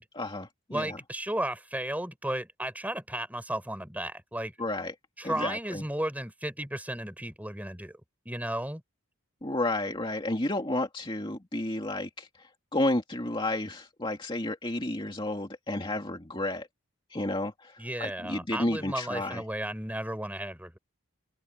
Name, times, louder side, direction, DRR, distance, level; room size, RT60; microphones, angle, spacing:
voice 1, 0.1-1.0 4.6-4.9 5.2-5.8 9.4-16.7 17.1-19.4, left 1 dB, 25° left, 2.3 m, -31 dB
voice 2, 0.7-4.5 5.2-8.0 8.3-8.8 17.8-20.8, right 1 dB, 5° right, 4.1 m, -34 dB
open air
head